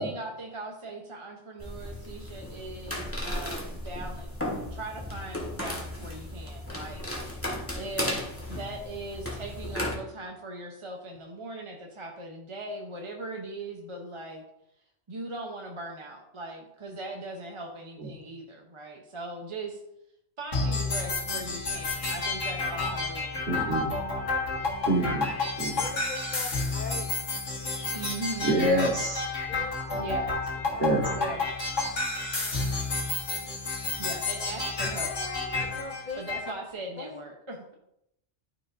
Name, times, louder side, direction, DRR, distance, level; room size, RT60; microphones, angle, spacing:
voice 1, 0.0-4.3 4.7-7.0 7.4-8.2 8.5-14.4 15.1-19.8 20.4-23.6 27.9-28.7 29.9-30.4 31.1-31.4 34.0-35.2 36.2-37.7, right 2 dB, 30° right, 1 dB, 0.7 m, -39 dB
sound 1, 1.6-9.9, left 1 dB, 10° left, 1.5 m, -35 dB
sound 2, 20.5-36.5, left 3 dB, 80° left, 1.9 m, -30 dB
voice 2, 23.5-23.9 24.9-26.0 28.4-29.3 30.8-31.1, right 1 dB, 50° right, -1 dB, 1.8 m, -27 dB
voice 3, 25.6-27.2 29.5-30.4 30.7-30.9 32.2-32.9 34.9-36.2 37.0-37.2, left 4 dB, 55° left, 2 dB, 0.6 m, -41 dB
12.5 x 4.7 x 2.5 m, 0.80 s
omnidirectional pair, 1.3 m